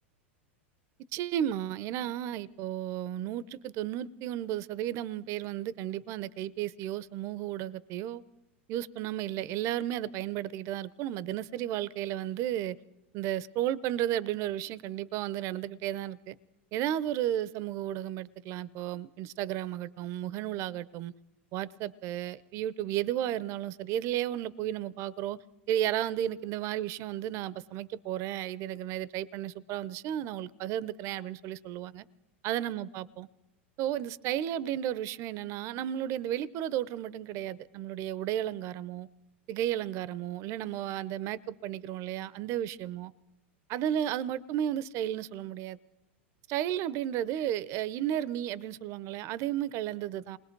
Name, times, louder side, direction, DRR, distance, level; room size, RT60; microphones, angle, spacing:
voice 1, 1.1-8.2 8.7-12.8 13.1-16.3 16.7-21.1 21.5-25.4 25.7-32.0 32.4-33.3 33.8-39.1 39.5-43.1 43.7-45.8 46.5-50.4, right 11 dB, 45° right, 0.7 m, -33 dB
28.0 x 20.5 x 4.6 m
hypercardioid pair, 105°, 7 cm